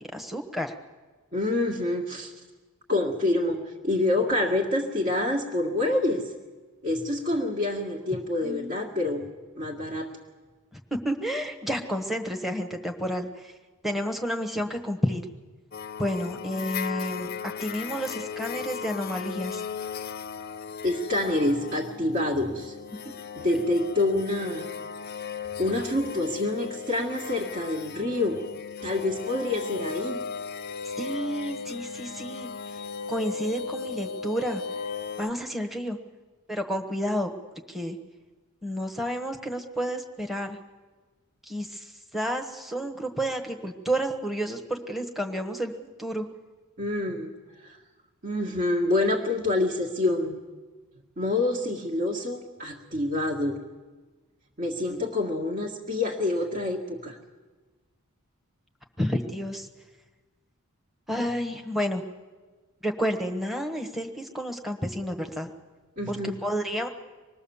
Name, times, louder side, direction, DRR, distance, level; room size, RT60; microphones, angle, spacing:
voice 1, 0.1-0.8 8.4-8.8 10.7-10.8 11.0-13.5 13.8-15.2 16.0-17.3 17.6-19.6 31.0-32.8 33.1-34.6 35.2-36.0 36.5-37.3 37.7-38.0 38.6-40.6 41.5-45.7 46.0-46.2 54.9-55.1 59.0-59.7 61.1-62.0 62.8-65.5 66.1-66.9, equal, ahead, 3 dB, 1.2 m, -30 dB
voice 2, 1.3-2.3 2.9-6.3 6.8-9.2 9.6-10.2 20.8-22.7 23.4-24.7 25.6-28.4 28.8-30.2 46.8-47.3 47.6-47.8 48.2-50.4 51.2-53.6 54.6-57.2 66.0-66.4, left 2 dB, 45° right, -3 dB, 1.9 m, -27 dB
sound 1, 15.7-35.3, left 6 dB, 45° left, 0.6 m, -36 dB
25.5 x 20.5 x 7.2 m, 1.3 s
head